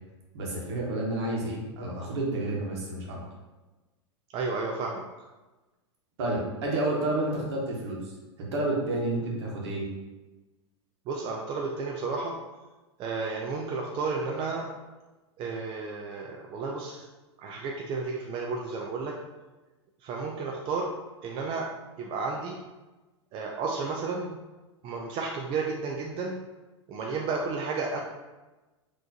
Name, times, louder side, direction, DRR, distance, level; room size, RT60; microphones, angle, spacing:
voice 1, 0.3-3.2 6.2-9.8, right 2 dB, 65° right, -3 dB, 1.3 m, -30 dB
voice 2, 4.3-5.0 11.1-12.3 13.0-14.7 15.4-17.1 17.4-19.1 20.0-20.9 21.2-21.7 22.0-22.5 23.3-24.4 24.8-26.4 26.9-28.0, right 4 dB, 35° right, 0 dB, 0.4 m, -32 dB
4.2 x 2.9 x 2.8 m, 1.1 s
hypercardioid pair, 95°, 15 cm